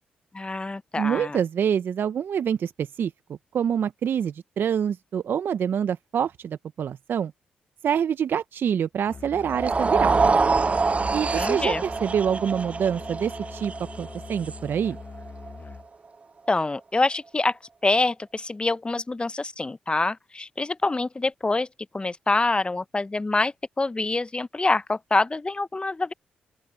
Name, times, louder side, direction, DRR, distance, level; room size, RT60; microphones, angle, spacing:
voice 1, 0.3-1.4 11.3-11.8 16.5-21.7 21.9-26.1, left 3 dB, 25° left, 0.9 m, -26 dB
voice 2, 1.0-3.1 3.5-7.3 7.8-10.3 11.1-13.7 14.0-15.0, right 8 dB, 60° right, 0.7 m, -26 dB
Musical instrument, 9.1-16.0, left 4 dB, 40° left, 1.4 m, -42 dB
sound 1, 9.5-15.7, right 4 dB, 35° right, 0.5 m, -25 dB
open air
hypercardioid pair, 40°, 4 cm